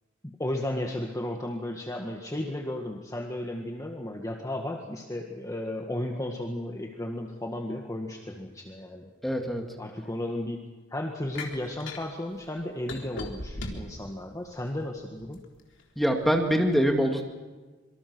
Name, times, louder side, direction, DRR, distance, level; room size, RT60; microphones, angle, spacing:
voice 1, 0.2-9.1 9.8-10.6 10.9-15.4, left 1 dB, 15° left, 2 dB, 1.8 m, -34 dB
voice 2, 9.2-9.6 16.0-17.2, equal, ahead, 3 dB, 2.2 m, -24 dB
sound 1, 11.4-12.1 12.9-14.0 14.6-15.5, left 2 dB, 65° left, 3.7 m, -36 dB
26.5 x 24.0 x 6.2 m, 1.3 s
head